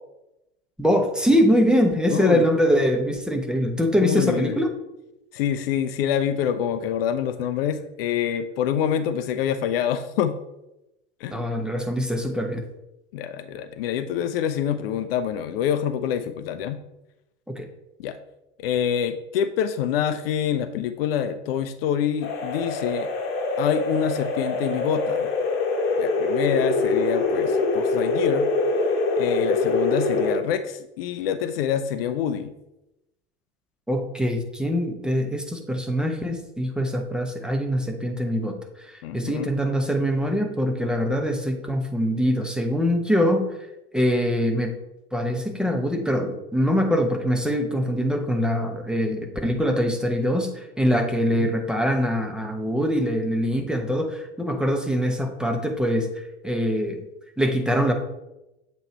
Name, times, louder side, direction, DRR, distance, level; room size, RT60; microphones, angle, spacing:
voice 1, 0.8-4.7 11.3-12.6 17.5-17.7 33.9-38.6 38.8-43.5 43.9-44.7 45.1-56.1 56.4-57.0 57.4-57.9, equal, ahead, 3 dB, 0.8 m, -23 dB
voice 2, 2.1-2.5 4.0-4.6 5.3-10.3 11.2-11.4 13.1-16.8 18.0-18.2 18.6-23.1 23.6-25.3 26.0-28.5 29.2-32.5 39.0-39.5 51.4-51.5, left 9 dB, 60° left, 11 dB, 0.5 m, -26 dB
sound 1, 22.2-30.3, left 3 dB, 35° left, 1.3 m, -24 dB
7.6 x 3.0 x 4.3 m, 0.92 s
figure-of-eight pair, 80°, 35 cm